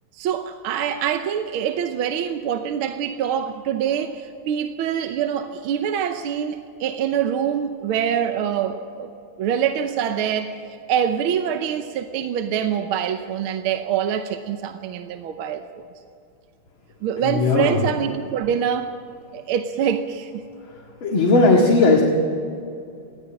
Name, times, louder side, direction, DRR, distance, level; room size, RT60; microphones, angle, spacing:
voice 1, 0.1-9.1 9.4-15.8 17.0-18.9 19.3-20.4, right 8 dB, 75° right, 8 dB, 1.7 m, -25 dB
voice 2, 17.2-17.8 21.0-22.0, left 3 dB, 65° left, -1 dB, 2.7 m, -16 dB
19.5 x 15.5 x 8.7 m, 2.5 s
omnidirectional pair, 2.4 m